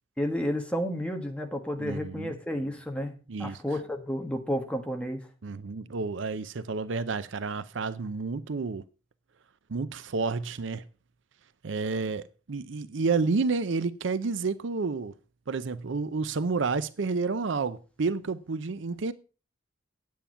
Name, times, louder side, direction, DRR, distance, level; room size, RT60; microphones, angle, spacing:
voice 1, 0.2-3.1 3.4-5.3, equal, 5° left, 1.5 m, -31 dB
voice 2, 1.8-2.3 3.3-3.6 5.4-8.8 9.7-10.8 11.6-15.1 15.5-19.1, right 4 dB, 65° right, 0.6 m, -30 dB
9.3 x 8.7 x 5.6 m
head